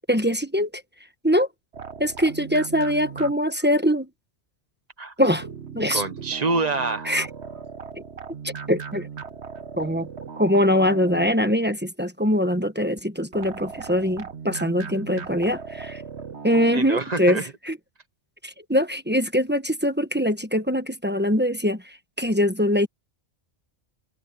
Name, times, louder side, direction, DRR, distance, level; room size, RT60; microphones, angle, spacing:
voice 1, 0.1-0.8 1.2-1.5 2.0-4.1 5.2-5.4 5.7-6.0 7.0-7.3 8.4-9.1 9.8-10.1 10.4-16.0 16.4-17.8 18.4-22.9, equal, 10° right, 1.1 m, -23 dB
sound 1, 1.7-3.7 5.3-11.7 13.3-16.8, right 6 dB, 70° right, 1.7 m, -38 dB
voice 2, 5.9-7.2 16.7-17.5, right 3 dB, 35° right, 1.1 m, -26 dB
omnidirectional pair, 1.2 m